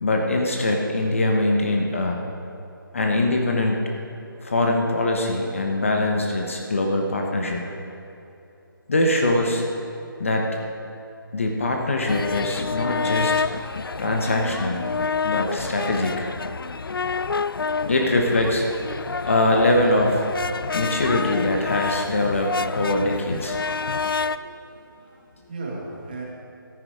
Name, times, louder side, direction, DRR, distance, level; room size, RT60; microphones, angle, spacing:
voice 1, 0.0-2.2 2.9-3.9 4.4-7.7 8.9-9.7 10.2-10.7 11.3-13.5 14.0-14.9 15.2-16.3 17.9-18.6 18.9-20.3 20.7-23.6, left 1 dB, 35° left, 1 dB, 1.1 m, -23 dB
sound 1, 12.1-24.4, left 5 dB, 75° left, 0.5 m, -28 dB
voice 2, 24.0-26.2, right 2 dB, 25° right, -3 dB, 1.8 m, -38 dB
14.0 x 9.9 x 5.0 m, 2.8 s
figure-of-eight pair, 175°, 12 cm